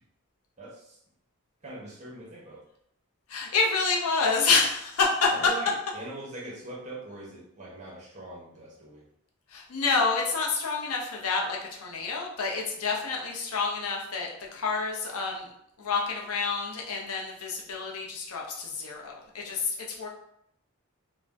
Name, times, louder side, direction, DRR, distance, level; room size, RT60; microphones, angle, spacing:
voice 1, 0.6-1.0 1.6-2.6 5.3-9.0, right 2 dB, 35° right, -4 dB, 0.8 m, -41 dB
voice 2, 3.3-5.3 9.5-15.5 15.8-20.1, left 4 dB, 75° left, 0 dB, 0.6 m, -28 dB
2.5 x 2.1 x 3.3 m, 0.73 s
head